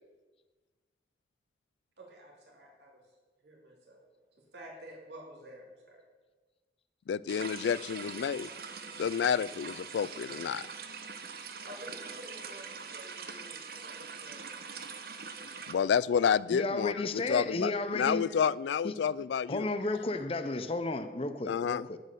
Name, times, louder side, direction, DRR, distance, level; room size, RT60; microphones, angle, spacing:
voice 1, 2.0-3.1 3.4-4.0 4.4-6.0 11.6-14.5, right 1 dB, 75° right, -1 dB, 2.6 m, -50 dB
voice 2, 7.1-8.5 9.0-10.7 15.7-19.7 21.5-21.9, left 7 dB, 80° left, 20 dB, 0.3 m, -30 dB
sound 1, 7.3-15.7, right 5 dB, 55° right, 0.8 m, -43 dB
voice 3, 16.5-18.3 18.8-18.9 19.5-22.0, left 2 dB, 30° left, 10 dB, 0.6 m, -33 dB
9.3 x 8.2 x 6.6 m, 1.3 s
head